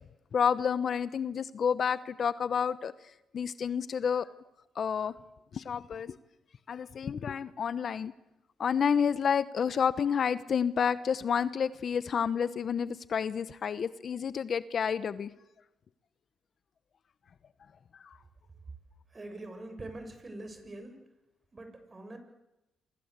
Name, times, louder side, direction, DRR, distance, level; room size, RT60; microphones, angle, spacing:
voice 1, 0.3-2.9 3.3-4.3 4.8-5.1 5.5-6.2 6.7-8.1 8.6-15.3 18.0-18.2, left 7 dB, 50° left, 15 dB, 1.0 m, -29 dB
voice 2, 19.1-21.0 21.5-22.2, right 2 dB, 25° right, 7 dB, 6.9 m, -44 dB
29.0 x 24.5 x 8.2 m, 0.95 s
cardioid pair, 90°, 0 cm